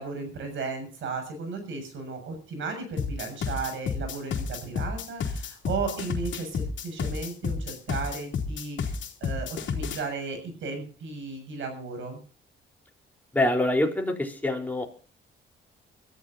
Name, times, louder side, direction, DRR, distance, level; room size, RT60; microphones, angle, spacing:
voice 1, 0.0-12.2, right 4 dB, 75° right, 6 dB, 6.8 m, -35 dB
sound 1, 3.0-10.0, left 6 dB, 70° left, 3.1 m, -31 dB
voice 2, 13.3-14.9, left 1 dB, 10° left, 1 dB, 3.9 m, -25 dB
24.0 x 14.0 x 2.7 m, 0.40 s
cardioid pair, 90°, 20 cm